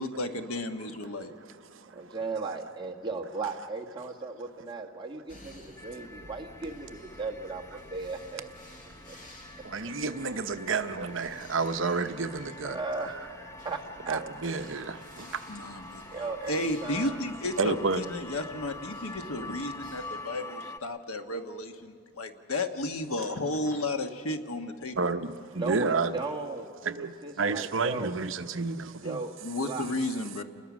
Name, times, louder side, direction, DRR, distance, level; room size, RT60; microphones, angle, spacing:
voice 1, 0.0-1.3 15.5-16.0 16.5-25.0 29.4-30.4, left 2 dB, 75° left, 1.4 m, -33 dB
voice 2, 0.7-2.2 9.6-13.2 14.1-16.0 17.6-18.0 18.9-19.2 19.4-19.5 23.2-23.3 23.7-23.8 25.0-26.2 26.8-29.2, right 4 dB, 55° right, 0.8 m, -31 dB
voice 3, 1.9-8.5 9.1-9.2 12.6-14.2 16.1-17.2 25.6-26.7 27.0-28.1 29.0-29.4 29.6-29.9, right 3 dB, 20° right, 1.5 m, -36 dB
sound 1, 5.3-20.2, left 1 dB, 35° left, 2.2 m, -53 dB
sound 2, 5.8-20.8, left 2 dB, 10° left, 0.6 m, -46 dB
29.5 x 20.5 x 6.2 m
head